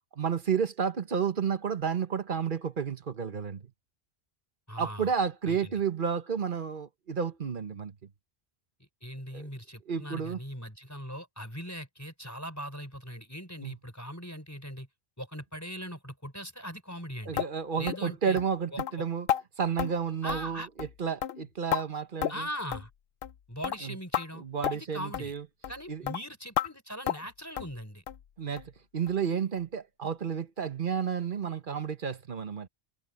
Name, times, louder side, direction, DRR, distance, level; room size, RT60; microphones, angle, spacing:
voice 1, 0.2-3.6 4.8-7.9 9.3-9.5 9.9-10.4 13.6-13.7 17.3-19.3 19.6-22.5 23.8-24.0 24.3-25.4 25.9-26.0 28.4-32.7, right 7 dB, 55° right, 1.2 m, -31 dB
voice 2, 4.7-5.1 5.5-5.7 9.0-14.9 15.2-17.4 17.8-18.4 18.7-18.8 20.2-20.7 22.3-22.9 23.5-24.4 24.7-25.3 25.7-28.0, equal, 15° left, 4.3 m, -40 dB
sound 1, 17.4-17.5 17.9-18.0 18.4-18.5 18.8-18.9 19.3-19.4 19.8-19.9 20.3-20.5 20.8-20.9 21.2-21.8 22.2-22.4 22.7-22.9 23.2-23.4 23.6-23.8 24.1-24.3 24.6-24.8 25.1-25.3 25.6-25.8 26.1-26.2 26.6-26.7 27.1-27.3 27.6-27.7 28.1-28.2 28.6-28.7 29.1-29.2 29.6-29.7, left 10 dB, 65° left, 0.8 m, -31 dB
omnidirectional pair, 1.1 m